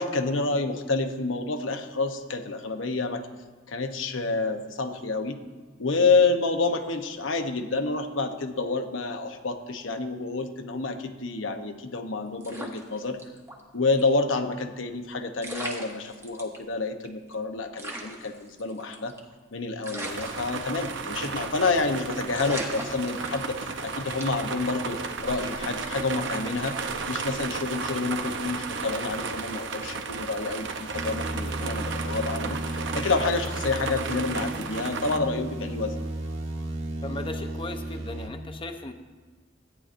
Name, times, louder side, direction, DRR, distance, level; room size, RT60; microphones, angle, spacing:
voice 1, 0.0-3.3 3.7-5.4 5.8-13.2 13.7-19.1 19.5-26.8 27.1-35.9, left 3 dB, 85° left, 6 dB, 0.9 m, -28 dB
sound 1, 12.4-13.6 13.9-14.0 15.0-15.1 15.4-16.6 17.0-17.1 17.3-17.4 17.8-19.3 19.8-21.1 21.4-21.7 22.0-22.1 22.3-23.7 24.2-24.5, right 1 dB, 15° right, 1.2 m, -38 dB
sound 2, 20.0-35.2, right 4 dB, 65° right, 0.7 m, -34 dB
sound 3, 30.9-38.3, right 1 dB, 85° right, 1.3 m, -34 dB
voice 2, 37.0-38.9, left 2 dB, 25° left, 6 dB, 0.7 m, -37 dB
16.0 x 9.5 x 2.6 m, 1.4 s
head